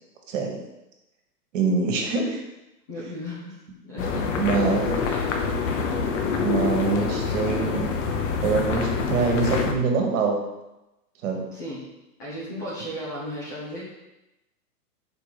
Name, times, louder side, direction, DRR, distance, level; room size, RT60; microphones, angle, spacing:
voice 1, 0.3-0.6 1.5-2.4 4.4-5.2 6.4-7.9 8.4-10.4 11.2-11.4, right 4 dB, 50° right, 2 dB, 1.5 m, -24 dB
voice 2, 2.9-3.6 3.8-4.3 4.6-4.7 11.5-11.9 12.2-13.8, equal, 15° left, -7 dB, 0.4 m, -35 dB
sound 1, 4.0-9.7, left 5 dB, 50° left, 0.9 m, -26 dB
4.9 x 3.8 x 4.9 m, 0.95 s
hypercardioid pair, 135°, 49 cm